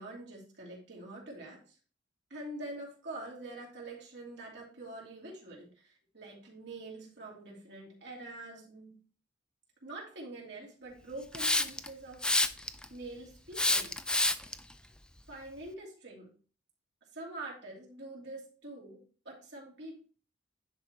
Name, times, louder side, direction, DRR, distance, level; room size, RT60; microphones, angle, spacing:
voice 1, 0.0-1.8 2.3-9.0 9.8-12.2 12.6-13.9 15.3-16.3 17.1-20.0, right 2 dB, 65° right, -2 dB, 2.7 m, -45 dB
Hiss, 11.3-11.9 12.2-12.8 13.5-14.5, left 2 dB, 5° left, 0.3 m, -27 dB
10.0 x 4.4 x 3.0 m, 0.38 s
head